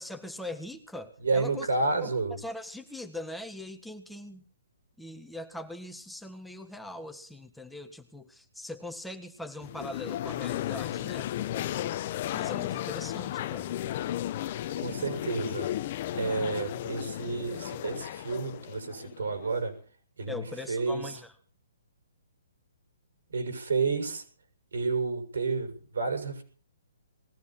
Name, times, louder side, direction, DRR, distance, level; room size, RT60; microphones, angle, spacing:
voice 1, 0.0-1.7 2.0-4.4 5.0-12.0 12.3-13.8 20.3-21.3, left 1 dB, ahead, 5 dB, 1.7 m, -41 dB
voice 2, 1.2-2.4 14.8-15.7 16.1-19.7 20.2-21.1 23.3-24.2 24.7-26.4, right 4 dB, 80° right, 5 dB, 6.9 m, -30 dB
sound 1, 9.6-19.6, left 13 dB, 45° left, 0.9 m, -34 dB
20.5 x 16.0 x 4.4 m, 0.43 s
hypercardioid pair, 145°, 0 cm